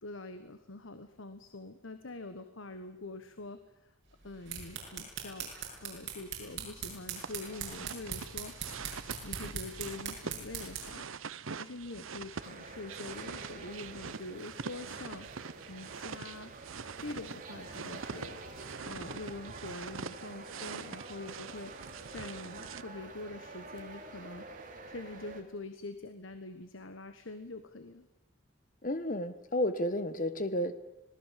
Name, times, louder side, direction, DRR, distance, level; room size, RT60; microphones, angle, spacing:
voice 1, 0.0-3.9 4.2-5.5 5.8-8.5 9.2-11.1 11.5-15.3 15.7-16.5 17.0-18.4 18.8-21.7 22.1-24.5 24.9-28.1, left 2 dB, 70° left, 9 dB, 1.3 m, -45 dB
sound 1, 4.2-11.0, right 6 dB, 55° right, 6.8 m, -41 dB
sound 2, 7.1-22.8, right 5 dB, 75° right, 0.8 m, -44 dB
sound 3, 12.4-25.4, right 3 dB, 40° right, 2.9 m, -48 dB
voice 2, 28.8-30.7, left 1 dB, 40° left, 12 dB, 1.2 m, -32 dB
25.5 x 19.0 x 7.5 m, 0.92 s
head